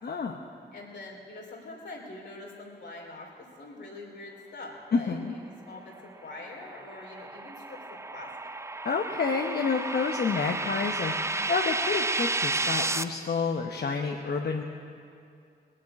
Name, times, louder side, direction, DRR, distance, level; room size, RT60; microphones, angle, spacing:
voice 1, 0.0-0.4 4.9-5.3 8.8-14.6, left 4 dB, 65° left, 2 dB, 0.9 m, -29 dB
voice 2, 0.7-8.5, left 2 dB, 85° left, -2 dB, 3.3 m, -44 dB
sound 1, 6.2-13.0, right 2 dB, 15° right, 0.5 m, -32 dB
19.5 x 7.6 x 8.8 m, 2.4 s
cardioid pair, 60°, 18 cm